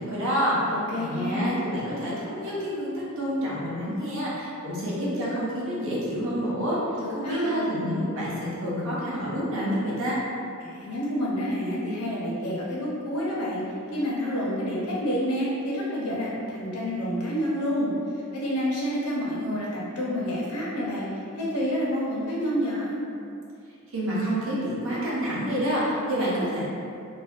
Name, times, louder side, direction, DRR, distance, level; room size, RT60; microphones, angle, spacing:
voice 1, 0.0-10.2 23.9-26.6, equal, 60° right, -7 dB, 0.6 m, -28 dB
voice 2, 0.7-1.6 7.0-7.7 10.6-13.6 13.9-17.9 18.3-21.1 21.4-23.0, equal, 90° left, -6 dB, 0.6 m, -28 dB
2.4 x 2.1 x 2.4 m, 2.5 s
head